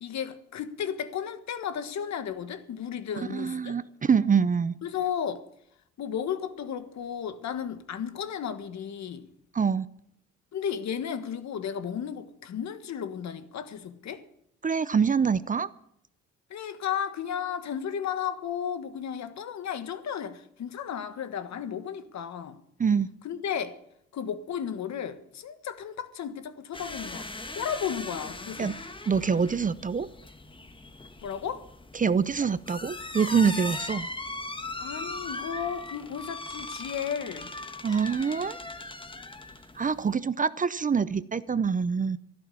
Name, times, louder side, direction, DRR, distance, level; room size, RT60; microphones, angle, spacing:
voice 1, 0.0-3.7 4.8-5.5 6.0-9.3 10.5-14.2 16.5-22.6 23.2-23.8 24.1-28.8 31.2-31.6 34.8-37.5, left 8 dB, 65° left, 1.5 m, -34 dB
voice 2, 3.3-4.7 9.5-9.9 14.6-15.7 22.8-23.1 28.6-28.7 29.1-30.1 31.9-34.1 37.8-38.6 39.8-42.2, right 6 dB, 25° right, 0.6 m, -25 dB
sound 1, 26.7-40.2, left 2 dB, 15° left, 1.4 m, -39 dB
13.0 x 11.5 x 7.0 m
cardioid pair, 90°, 30 cm